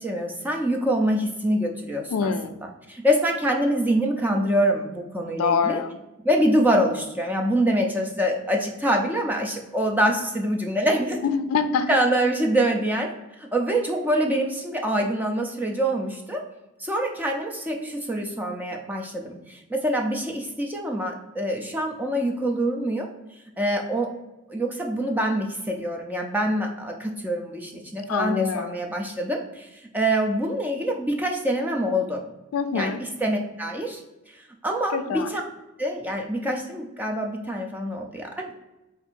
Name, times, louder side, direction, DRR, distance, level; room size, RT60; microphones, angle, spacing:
voice 1, 0.0-2.3 2.9-5.8 6.2-11.2 11.9-13.1 13.4-16.4 16.8-23.1 23.6-24.1 24.5-32.2 32.7-32.9 33.2-34.0 34.3-35.4 35.8-38.5, right 1 dB, 10° right, 1 dB, 0.4 m, -25 dB
voice 2, 2.1-2.6 5.3-6.0 11.2-11.9 28.1-28.8 32.5-33.0 34.9-35.3, left 5 dB, 75° left, 10 dB, 0.4 m, -25 dB
4.3 x 2.5 x 4.4 m, 1.0 s
head